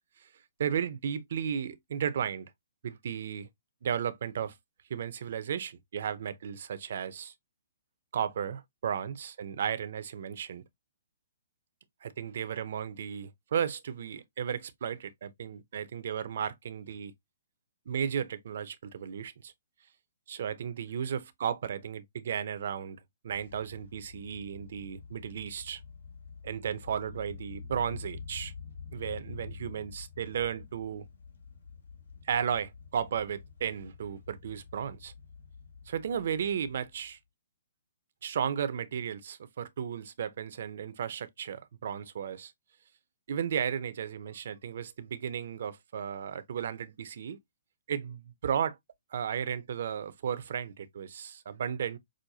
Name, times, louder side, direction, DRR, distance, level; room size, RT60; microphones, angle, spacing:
voice 1, 0.6-2.5 2.8-3.5 3.8-4.6 4.9-7.3 8.1-10.6 12.0-17.1 17.9-19.5 20.3-25.8 26.4-28.5 28.9-31.1 32.2-35.1 35.9-37.2 38.2-42.5 43.3-47.4 47.9-48.8 49.1-52.0, right 8 dB, 60° right, 0.7 m, -34 dB
sound 1, 23.3-37.1, left 5 dB, 75° left, 2.1 m, -47 dB
6.2 x 2.2 x 2.7 m
hypercardioid pair, 155°, 0 cm